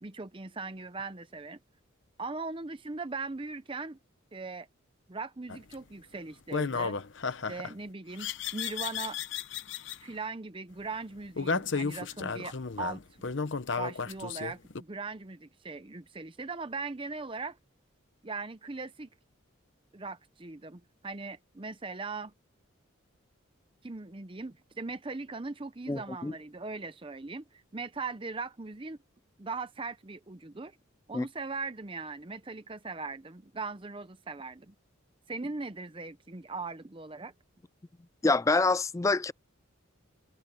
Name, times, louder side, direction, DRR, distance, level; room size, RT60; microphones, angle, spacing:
voice 1, 0.0-1.6 2.2-4.0 4.3-4.7 5.1-7.0 7.5-9.2 10.0-13.0 13.8-17.6 18.2-19.1 19.9-22.3 23.8-29.0 29.4-30.8 31.1-34.7 35.3-37.3, right 3 dB, 25° right, 0.7 m, -39 dB
sound 1, 5.5-5.7 6.5-7.7 8.2-10.0 11.4-14.8, left 5 dB, 60° left, 0.8 m, -33 dB
voice 2, 25.9-26.3 31.1-31.3 38.2-39.3, left 3 dB, 15° left, 0.3 m, -26 dB
head